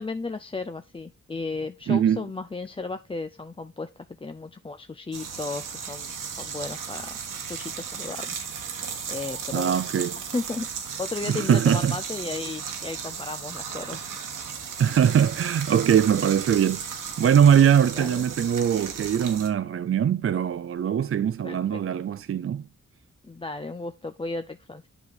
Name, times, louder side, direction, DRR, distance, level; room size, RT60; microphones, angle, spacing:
voice 1, 0.0-6.1 6.4-7.2 7.4-8.4 9.1-9.8 10.3-10.7 11.0-14.1 17.9-18.2 21.4-21.8 23.2-24.8, left 3 dB, 15° left, 0.5 m, -34 dB
voice 2, 1.9-2.2 9.5-10.2 11.3-11.9 14.8-16.8 17.2-22.7, right 8 dB, 45° right, 0.4 m, -21 dB
sound 1, 5.1-19.5, right 6 dB, 90° right, 1.3 m, -35 dB
8.0 x 5.3 x 4.0 m
cardioid pair, 50°, 31 cm